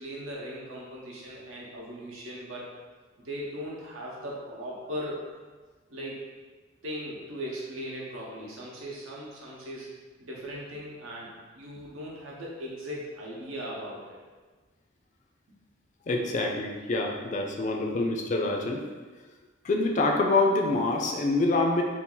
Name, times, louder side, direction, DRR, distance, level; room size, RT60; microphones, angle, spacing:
voice 1, 0.0-2.7 3.2-5.3 5.9-6.3 6.8-14.2 15.5-15.6, equal, 85° right, -4 dB, 0.8 m, -38 dB
voice 2, 16.1-18.9 19.6-21.8, left 2 dB, 35° left, 2 dB, 0.3 m, -26 dB
2.6 x 2.4 x 3.7 m, 1.4 s
head